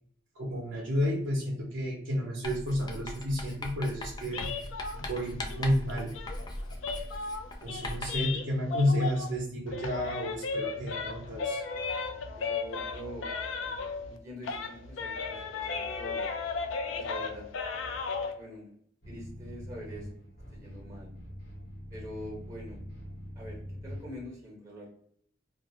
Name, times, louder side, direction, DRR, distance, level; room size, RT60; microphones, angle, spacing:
voice 1, 0.3-4.5 5.0-6.1 7.6-11.6, equal, 80° right, -3 dB, 0.7 m, -31 dB
Writing, 2.4-8.3, left 1 dB, 20° left, 0.3 m, -40 dB
sound 1, 4.3-9.4 9.7-14.2 14.4-18.3, left 4 dB, 90° left, 0.4 m, -35 dB
voice 2, 12.3-13.8 14.1-16.2 16.8-17.4 18.3-18.7 19.0-20.1 20.5-21.1 21.9-22.8 23.4-24.9, equal, 15° right, -3 dB, 1.0 m, -45 dB
sound 2, 19.0-24.2, equal, 55° left, 0.8 m, -44 dB
2.4 x 2.0 x 2.7 m, 0.66 s
head